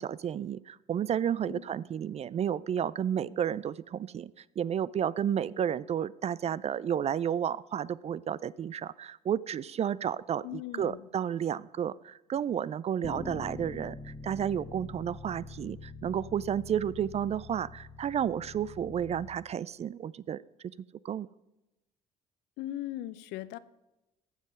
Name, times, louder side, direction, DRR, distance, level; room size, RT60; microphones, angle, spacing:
voice 1, 0.0-4.3 4.6-20.4 21.0-21.3, right 9 dB, 35° right, 20 dB, 0.4 m, -32 dB
voice 2, 10.4-11.1 22.6-23.6, left 14 dB, 65° left, 16 dB, 0.6 m, -38 dB
Bass guitar, 13.0-19.3, left 4 dB, 25° left, 1.4 m, -44 dB
14.5 x 7.2 x 5.2 m, 0.98 s
hypercardioid pair, 55°, 19 cm